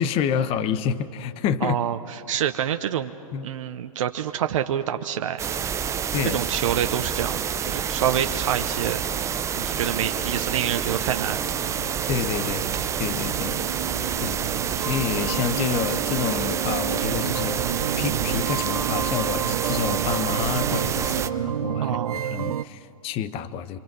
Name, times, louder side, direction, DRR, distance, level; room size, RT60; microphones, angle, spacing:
voice 1, 0.0-1.8 3.3-3.5 6.1-6.4 12.1-12.7 13.0-13.6 14.2-14.4 14.8-17.6 18.0-23.8, left 8 dB, 30° left, 13 dB, 1.0 m, -28 dB
voice 2, 1.6-2.0 2.3-3.1 3.4-5.4 6.3-9.0 9.5-11.4 21.8-22.2, right 10 dB, 60° right, 7 dB, 0.9 m, -27 dB
sound 1, 5.4-21.3, right 8 dB, 15° right, 0.6 m, -28 dB
sound 2, 6.0-22.6, right 10 dB, 80° right, 0.5 m, -31 dB
27.0 x 25.0 x 6.2 m, 2.6 s
hypercardioid pair, 115°, 18 cm